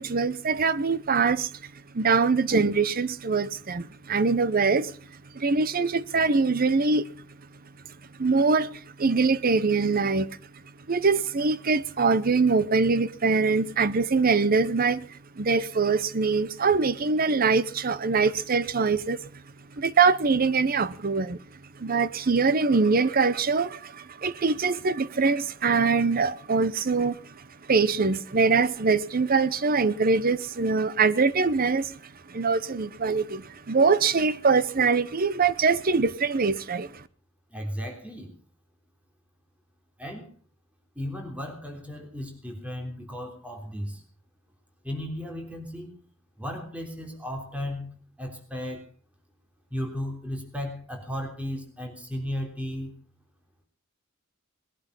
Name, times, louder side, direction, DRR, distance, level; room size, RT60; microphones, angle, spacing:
voice 1, 0.0-1.5 1.9-4.9 5.3-7.1 8.2-10.4 10.9-19.3 19.8-21.4 21.8-27.4 27.7-37.0, right 4 dB, 45° right, 0.8 m, -23 dB
voice 2, 37.5-38.3 40.0-40.3 41.0-44.0 44.8-46.0 46.4-48.8 49.7-52.9, equal, 5° right, 3.4 m, -35 dB
20.5 x 11.5 x 5.4 m
head